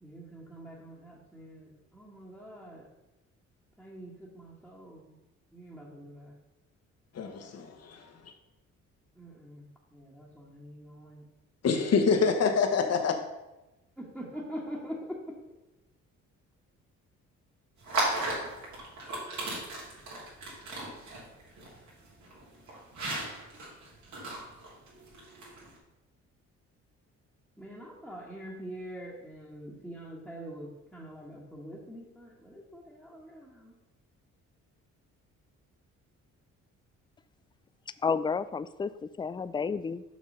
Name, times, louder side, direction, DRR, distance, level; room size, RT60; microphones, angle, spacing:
voice 1, 0.0-2.9 3.8-5.1 5.5-6.3 9.2-9.7 9.9-11.2 14.0-15.4 27.6-33.8, equal, ahead, 1.6 m, -44 dB
voice 2, 7.1-8.1 11.6-13.1, left 5 dB, 55° left, 1.3 m, -26 dB
sound 1, 17.8-25.8, right 1 dB, 70° right, 2.9 m, -36 dB
voice 3, 38.0-40.0, left 5 dB, 15° left, 0.3 m, -31 dB
6.3 x 5.9 x 5.5 m
cardioid pair, 90°, 30 cm